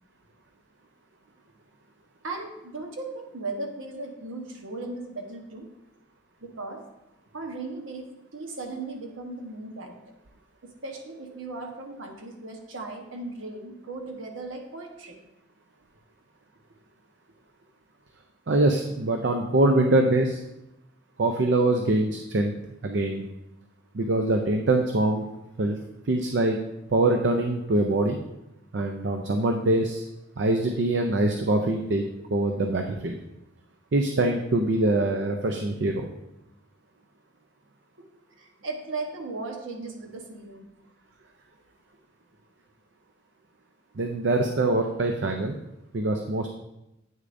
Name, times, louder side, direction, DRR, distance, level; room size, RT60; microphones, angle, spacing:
voice 1, 2.2-5.7 6.4-6.9 7.3-10.1 10.6-15.2 38.4-40.7, right 3 dB, 85° right, 2 dB, 1.1 m, -37 dB
voice 2, 18.5-20.4 21.2-22.5 22.8-23.3 23.9-25.2 25.6-25.8 26.0-26.6 26.9-28.2 28.7-30.0 30.4-32.0 32.3-33.2 33.9-36.1 44.0-45.6 45.9-46.5, right 2 dB, 60° right, 4 dB, 0.5 m, -24 dB
8.9 x 6.5 x 2.6 m, 0.89 s
head